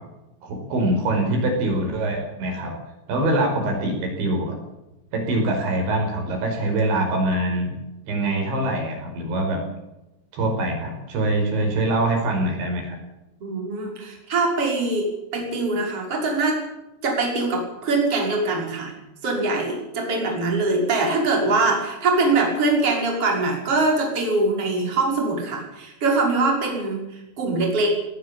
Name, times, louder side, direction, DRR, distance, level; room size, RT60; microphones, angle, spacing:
voice 1, 0.4-2.7 3.1-4.6 5.1-7.7 8.1-9.6 10.3-13.0, right 1 dB, 70° right, 3 dB, 7.6 m, -24 dB
voice 2, 13.4-16.6 17.0-18.9 19.2-27.9, right 3 dB, 30° right, 0 dB, 6.4 m, -23 dB
19.0 x 19.0 x 8.9 m, 0.95 s
omnidirectional pair, 5.4 m